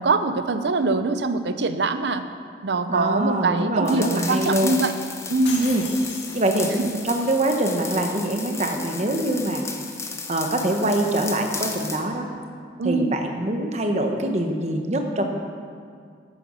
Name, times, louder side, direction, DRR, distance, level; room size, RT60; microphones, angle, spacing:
voice 1, 0.0-2.2 2.6-5.0 5.3-5.7 6.8-6.9 12.8-13.2, right 3 dB, 75° right, 10 dB, 0.6 m, -23 dB
voice 2, 2.9-4.8 5.6-5.8 6.3-6.7 7.0-9.6 10.3-12.3 12.8-15.2, right 1 dB, 40° right, 4 dB, 1.1 m, -24 dB
sound 1, 3.9-12.1, left 4 dB, 15° left, 0.8 m, -34 dB
sound 2, 5.5-6.9, left 4 dB, 90° left, 2.0 m, -36 dB
9.2 x 9.2 x 6.3 m, 2.2 s
head